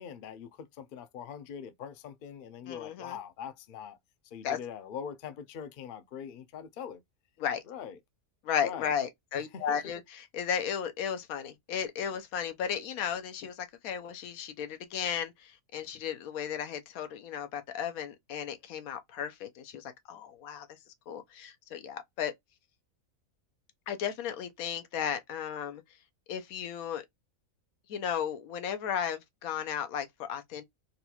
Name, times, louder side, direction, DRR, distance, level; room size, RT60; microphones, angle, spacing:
voice 1, 0.0-4.0 4.3-7.0 7.7-8.0 8.6-8.9 9.5-9.8, left 8 dB, 60° left, 0.5 m, -42 dB
voice 2, 2.7-3.2 4.4-4.6 7.4-7.6 8.4-20.8 21.1-22.3 23.9-25.8 26.3-27.0 27.9-30.6, left 8 dB, 90° left, 1.1 m, -35 dB
4.0 x 2.3 x 2.8 m
omnidirectional pair, 1.5 m